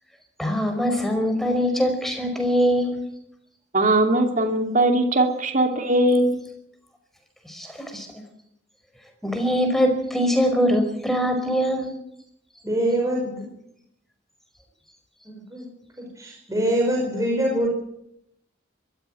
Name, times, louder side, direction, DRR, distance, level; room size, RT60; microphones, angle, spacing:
voice 1, 0.4-3.0 7.4-8.1 9.2-11.9 16.8-16.9, equal, ahead, 5 dB, 5.1 m, -23 dB
voice 2, 3.7-6.4, right 1 dB, 45° right, 5 dB, 2.7 m, -20 dB
voice 3, 12.6-13.4 15.3-15.7 16.0-17.7, right 1 dB, 15° right, -1 dB, 5.1 m, -24 dB
23.0 x 14.0 x 9.2 m, 0.77 s
head